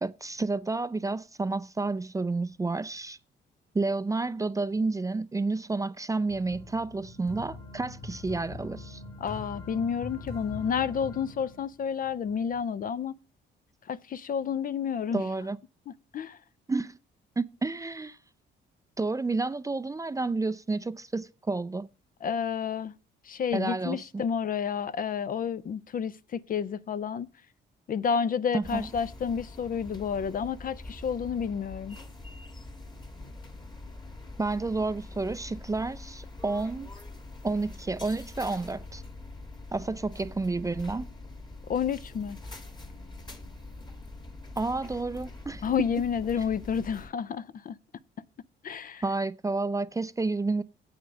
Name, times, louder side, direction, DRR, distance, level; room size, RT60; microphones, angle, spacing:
voice 1, 0.0-3.2 3.7-9.0 15.1-15.6 16.7-17.0 17.4-18.2 19.0-21.9 23.5-24.2 28.5-28.9 34.4-36.9 37.4-39.0 39.7-41.1 44.6-45.6 49.0-50.6, right 3 dB, 15° right, 0.4 m, -30 dB
sound 1, 6.3-12.6, left 2 dB, 60° left, 3.4 m, -43 dB
voice 2, 9.2-13.2 13.9-15.3 15.9-16.4 22.2-22.9 23.2-27.3 27.9-32.0 41.7-42.4 45.6-47.8 48.6-49.0, left 7 dB, 45° left, 0.5 m, -30 dB
sound 2, 28.6-47.1, left 2 dB, 20° left, 1.5 m, -44 dB
7.9 x 7.9 x 5.2 m
cardioid pair, 90°, 20 cm